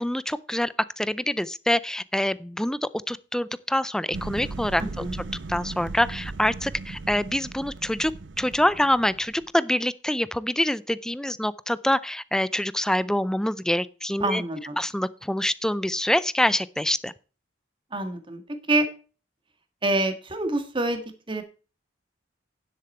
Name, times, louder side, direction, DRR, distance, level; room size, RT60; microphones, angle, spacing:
voice 1, 0.0-4.8 5.5-8.1 8.4-14.4 14.8-17.1, left 1 dB, 5° left, 0.4 m, -25 dB
sound 1, 4.1-9.5, right 3 dB, 70° right, 0.7 m, -37 dB
voice 2, 4.8-5.1 14.2-14.8 17.9-18.4 18.7-18.9 19.8-21.4, right 2 dB, 25° right, 1.7 m, -26 dB
10.0 x 7.7 x 4.3 m
head